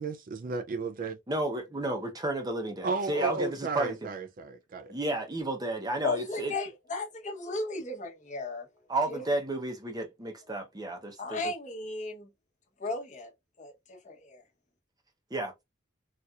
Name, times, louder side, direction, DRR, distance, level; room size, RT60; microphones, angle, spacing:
voice 1, 0.0-1.2 2.8-4.9, right 4 dB, 45° right, 0.4 m, -33 dB
voice 2, 1.3-4.0 4.9-6.5 8.9-11.5 15.3-15.5, right 2 dB, 20° right, 0.7 m, -32 dB
voice 3, 6.0-8.7 9.1-9.2 11.2-12.3 12.8-13.3 13.6-14.4, left 3 dB, 40° left, 1.0 m, -35 dB
4.1 x 2.4 x 2.3 m
head